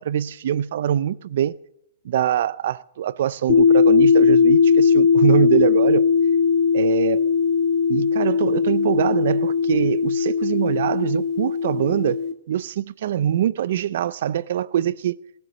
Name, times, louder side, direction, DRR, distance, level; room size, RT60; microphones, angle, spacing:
voice 1, 0.0-1.6 2.0-6.0 6.7-7.2 7.9-12.2 12.5-15.2, right 10 dB, 60° right, 0.4 m, -23 dB
sound 1, 3.5-12.3, left 6 dB, 35° left, 1.5 m, -18 dB
18.5 x 8.1 x 6.6 m
hypercardioid pair, 165°, 0 cm